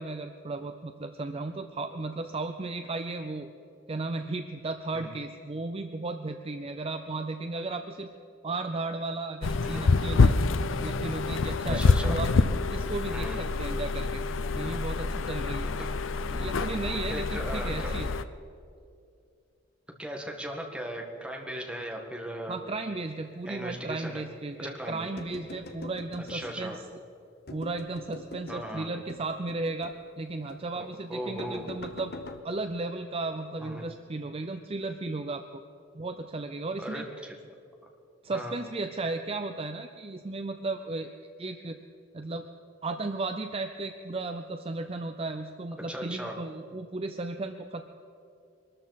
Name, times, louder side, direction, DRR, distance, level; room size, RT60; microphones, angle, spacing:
voice 1, 0.0-3.5 3.9-8.1 8.4-10.3 10.7-11.8 12.1-14.2 14.5-15.7 16.3-18.1 22.5-26.8 27.5-32.1 32.4-35.6 35.9-37.1 38.2-41.1 41.4-41.8 42.1-42.5 42.8-47.8, right 3 dB, 30° right, 7 dB, 0.5 m, -35 dB
sound 1, 9.4-18.2, left 4 dB, 80° left, 0.5 m, -26 dB
voice 2, 11.7-12.2 13.1-13.4 15.8-15.9 16.6-17.9 20.0-22.5 23.4-24.2 24.6-25.1 26.3-26.8 28.5-28.9 30.7-31.6 33.6-33.8 36.8-37.4 38.3-38.5 45.9-46.4, right 1 dB, 5° right, 0 dB, 1.6 m, -37 dB
sound 2, 25.2-26.9 27.5-28.7 29.1-30.1 30.5-30.7 31.4-32.4, left 2 dB, 55° left, 0.9 m, -44 dB
23.0 x 13.0 x 4.1 m, 2.5 s
head